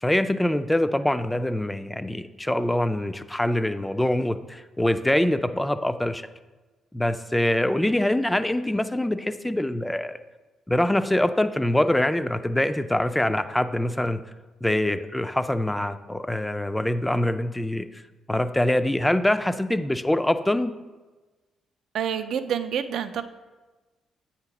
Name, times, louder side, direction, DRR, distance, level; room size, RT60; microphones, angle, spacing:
voice 1, 0.0-6.3 6.9-10.2 10.7-14.2 14.6-18.0 18.3-20.7, left 1 dB, 10° left, 10 dB, 0.3 m, -24 dB
voice 2, 21.9-23.2, right 8 dB, 70° right, 10 dB, 0.4 m, -27 dB
7.7 x 2.9 x 5.8 m, 1.2 s
cardioid pair, 90°, 0 cm